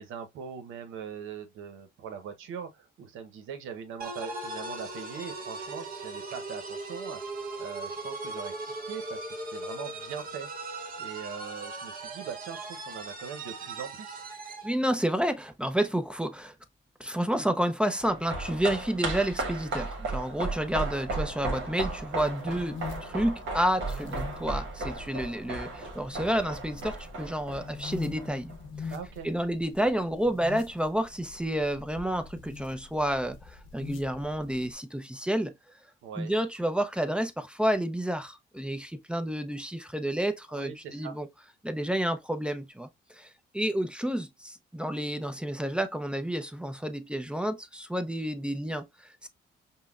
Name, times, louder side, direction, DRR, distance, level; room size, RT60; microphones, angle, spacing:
voice 1, 0.0-7.2 7.6-14.2 28.9-29.3 36.0-36.3 40.5-41.2, right 7 dB, 90° right, 0.8 m, -41 dB
sound 1, 4.0-14.7, right 2 dB, 45° right, 1.0 m, -39 dB
voice 2, 14.6-16.5 17.0-28.5 28.8-28.9 29.2-35.5 36.2-41.3 41.6-49.3, right 1 dB, 5° right, 0.5 m, -30 dB
sound 2, 18.0-28.6 28.8-28.9, right 3 dB, 70° right, 1.2 m, -35 dB
sound 3, 21.9-34.7, left 5 dB, 75° left, 0.9 m, -44 dB
5.5 x 2.1 x 2.3 m
cardioid pair, 90°, 20 cm